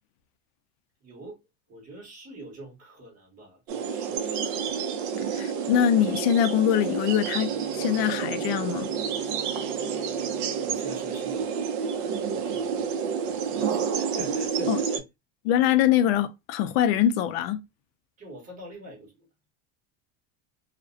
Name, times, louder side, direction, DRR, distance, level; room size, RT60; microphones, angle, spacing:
voice 1, 1.0-1.4 1.7-4.8 9.9-13.0 13.2-15.0 18.2-19.3, right 1 dB, 25° right, 1.1 m, -46 dB
sound 1, 3.7-15.0, right 7 dB, 55° right, 0.5 m, -29 dB
voice 2, 5.3-8.9 14.7-14.8 15.5-17.6, left 10 dB, 75° left, 0.4 m, -23 dB
Bowed string instrument, 6.6-12.2, left 3 dB, ahead, 1.0 m, -53 dB
2.4 x 2.1 x 2.4 m
supercardioid pair, 165°, 31 cm